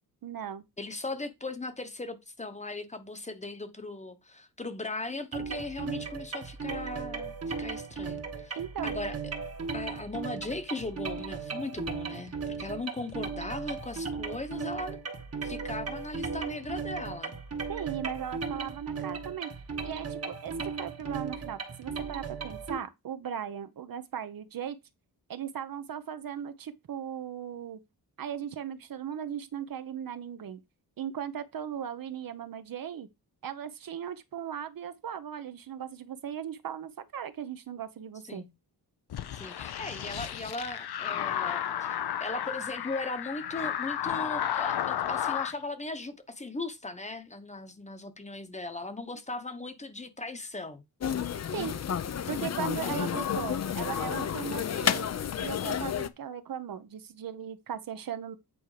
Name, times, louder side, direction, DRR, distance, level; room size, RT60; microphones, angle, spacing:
voice 1, 0.2-0.6 8.5-8.9 17.7-19.5 19.8-24.8 25.3-27.8 28.2-30.6 31.0-33.1 33.4-38.4 51.5-51.8 52.3-55.1 55.4-58.4, right 9 dB, 60° right, 0.9 m, -38 dB
voice 2, 0.8-8.6 8.8-9.2 9.7-15.0 15.4-17.3 38.2-38.5 39.3-50.8 51.5-51.7 52.8-53.2, left 2 dB, 20° left, 1.0 m, -38 dB
sound 1, 5.3-22.8, right 5 dB, 40° right, 1.4 m, -36 dB
sound 2, 39.1-45.5, left 10 dB, 85° left, 0.9 m, -33 dB
sound 3, 51.0-56.1, left 8 dB, 45° left, 0.6 m, -31 dB
8.7 x 4.4 x 4.9 m
wide cardioid pair, 155°, 38 cm